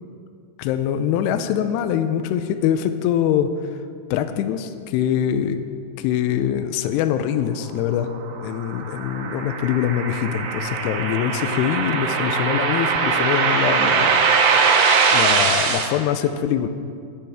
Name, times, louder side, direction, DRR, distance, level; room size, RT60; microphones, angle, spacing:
voice 1, 0.6-3.5 4.1-5.6 6.0-8.1 8.4-14.2 15.1-16.7, left 10 dB, 90° left, 9 dB, 2.4 m, -23 dB
sound 1, 8.1-15.9, right 5 dB, 90° right, 3.5 m, -21 dB
20.0 x 10.5 x 3.5 m, 2.3 s
omnidirectional pair, 5.3 m